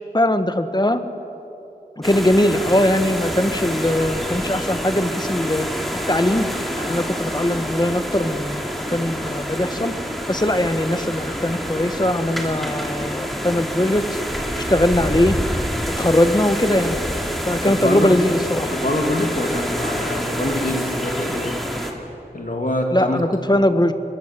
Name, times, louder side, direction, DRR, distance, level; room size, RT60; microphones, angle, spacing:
voice 1, 0.1-1.0 2.0-5.7 6.1-6.5 6.7-9.9 10.3-14.2 14.7-15.4 16.0-17.0 17.5-18.7 22.9-23.9, left 1 dB, 25° left, 9 dB, 1.5 m, -20 dB
sound 1, 2.0-21.9, equal, ahead, 3.1 m, -27 dB
voice 2, 17.6-18.2 18.7-21.6 22.3-23.3, left 1 dB, 55° left, 2 dB, 2.9 m, -25 dB
26.0 x 22.5 x 7.7 m, 3.0 s
wide cardioid pair, 50°, 16 cm